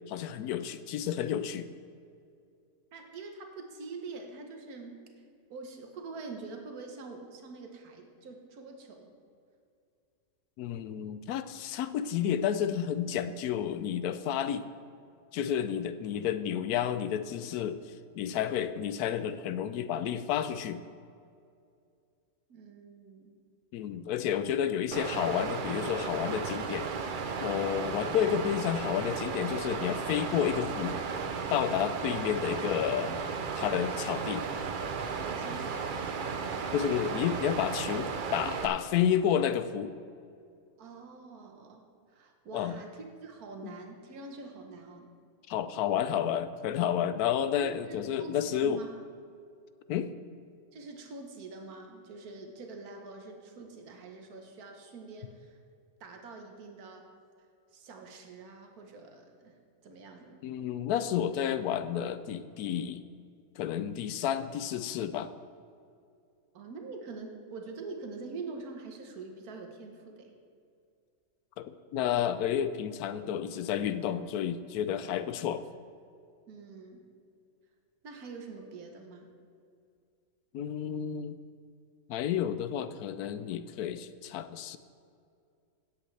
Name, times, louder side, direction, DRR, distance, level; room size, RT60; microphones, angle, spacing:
voice 1, 0.1-1.7 10.6-14.7 15.3-20.8 23.7-26.9 27.4-31.0 31.5-33.2 33.5-34.5 36.7-39.9 42.5-42.8 43.6-43.7 45.5-48.8 49.9-50.1 60.4-63.0 63.6-65.3 71.6-75.6 80.5-81.4 82.1-84.8, left 9 dB, 90° left, 11 dB, 1.1 m, -31 dB
voice 2, 2.9-5.0 5.5-9.1 22.5-23.4 35.2-36.2 40.8-45.1 47.6-49.0 50.7-55.6 56.0-57.1 57.7-59.5 59.8-60.5 66.5-70.3 76.5-77.0 78.0-79.3, right 3 dB, 80° right, 3 dB, 1.6 m, -45 dB
Water, 24.9-38.7, right 5 dB, 55° right, 0.6 m, -35 dB
16.5 x 7.8 x 3.3 m, 2.4 s
omnidirectional pair, 1.6 m